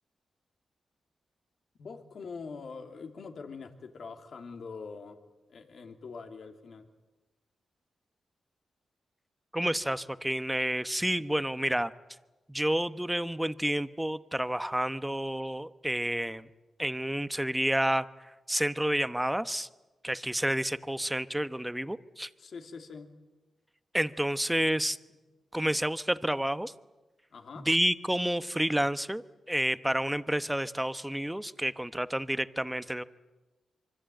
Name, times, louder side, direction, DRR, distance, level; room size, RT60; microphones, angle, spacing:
voice 1, 1.8-5.2 5.5-6.9 22.4-23.1 27.3-27.7, left 5 dB, 65° left, 6 dB, 3.0 m, -44 dB
voice 2, 9.5-11.9 12.5-16.5 16.8-19.7 20.0-22.3 23.9-25.0 25.5-26.7 27.6-33.0, right 1 dB, 5° right, 13 dB, 1.1 m, -30 dB
26.5 x 24.5 x 9.1 m, 1.2 s
cardioid pair, 80°, 0 cm